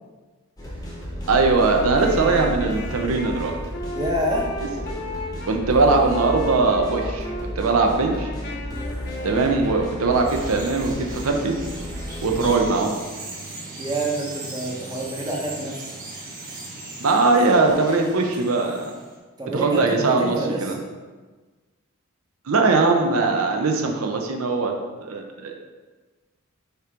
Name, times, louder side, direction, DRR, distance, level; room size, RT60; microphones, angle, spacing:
sound 1, 0.6-12.6, equal, 15° left, 0.9 m, -32 dB
voice 1, 1.3-3.6 5.5-7.3 7.6-8.3 9.2-11.6 12.2-13.0 17.0-18.9 19.5-20.8 22.5-24.8 25.0-25.5, right 3 dB, 75° right, 2 dB, 0.6 m, -20 dB
Wind instrument woodwind instrument, 1.4-5.6 6.1-7.5 7.9-11.1, left 1 dB, 45° left, 0.8 m, -36 dB
voice 2, 3.9-4.5 9.2-9.4 13.8-15.8 19.4-20.8, right 1 dB, 20° right, -2 dB, 0.8 m, -27 dB
Bird vocalization bird call bird song, 10.2-19.1, right 2 dB, 40° right, 1.7 m, -38 dB
6.7 x 2.9 x 5.0 m, 1.3 s
head